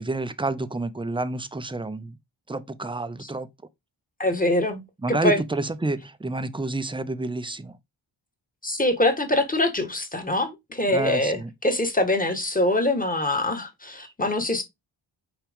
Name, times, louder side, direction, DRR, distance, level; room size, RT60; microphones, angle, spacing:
voice 1, 0.0-2.2 2.5-3.5 5.0-7.8 10.9-11.5 14.0-14.1, right 2 dB, 10° right, 0.5 m, -29 dB
voice 2, 4.2-4.8 5.2-5.4 8.6-14.6, left 1 dB, 15° left, 1.5 m, -24 dB
5.8 x 4.8 x 3.6 m
wide cardioid pair, 95°, 48 cm